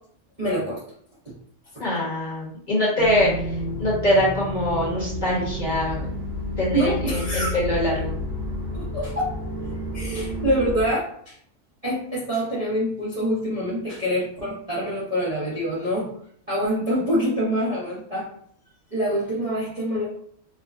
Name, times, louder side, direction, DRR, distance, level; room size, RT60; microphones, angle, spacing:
voice 1, 0.4-0.8 1.2-1.3 1.7-1.8 6.7-7.5 8.7-9.3 9.9-11.3 11.8-16.1 16.5-18.3 18.9-20.0, equal, 30° right, -7 dB, 0.7 m, -25 dB
voice 2, 1.8-3.3 3.8-6.1 6.6-8.2, left 1 dB, 35° left, -6 dB, 1.1 m, -23 dB
sound 1, 3.0-10.8, left 1 dB, 55° right, 1.2 m, -30 dB
4.7 x 2.2 x 2.4 m, 0.63 s
omnidirectional pair, 1.6 m